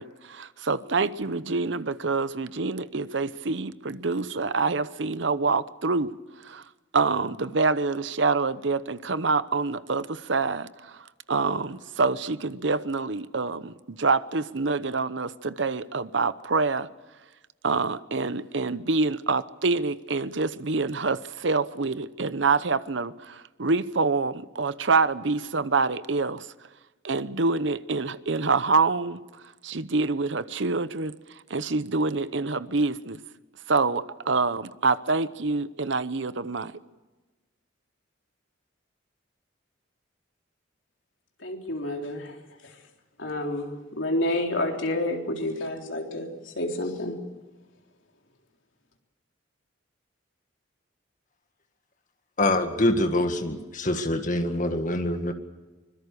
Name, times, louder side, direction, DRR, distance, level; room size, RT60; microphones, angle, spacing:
voice 1, 0.0-6.1 6.4-6.6 6.9-11.0 11.3-16.9 17.6-26.5 27.0-29.2 29.6-31.1 31.5-33.2 33.7-36.7, right 4 dB, 65° right, 15 dB, 0.9 m, -26 dB
voice 2, 41.4-42.3 43.2-46.3 46.6-47.1, left 1 dB, 75° left, 2 dB, 3.8 m, -29 dB
voice 3, 52.4-55.3, left 1 dB, 40° left, 6 dB, 1.9 m, -25 dB
24.5 x 22.5 x 6.8 m, 1.2 s
head